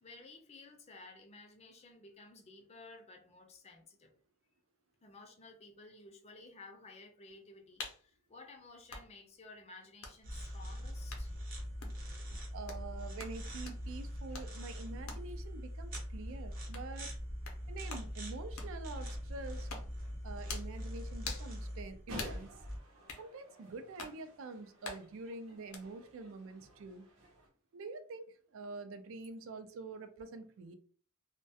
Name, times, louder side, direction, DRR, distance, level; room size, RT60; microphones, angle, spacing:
voice 1, 0.0-4.1 5.0-11.3, left 3 dB, 30° left, 4 dB, 0.4 m, -55 dB
sound 1, 7.8-8.0 8.9-9.1 10.0-10.2 11.1-11.3 11.8-12.0 12.7-12.8 13.2-13.4 13.7-13.8 14.3-14.5 15.1-15.3 15.9-16.1 16.7-16.9 17.4-17.6 17.9-18.1 18.6-18.8 19.7-19.9 20.5-20.7 21.2-21.5 22.2-22.4 23.1-23.2 24.0-24.2 24.8-25.1 25.7-25.8, left 4 dB, 75° left, 0.6 m, -45 dB
sound 2, 10.2-22.8, equal, 45° right, 0.8 m, -42 dB
voice 2, 12.5-17.1 17.7-19.7 20.2-22.6 23.2-27.1 27.7-30.7, right 3 dB, 65° right, 9 dB, 0.3 m, -46 dB
sound 3, 22.1-27.5, right 1 dB, 85° right, 0.7 m, -53 dB
2.2 x 2.1 x 2.7 m, 0.43 s
head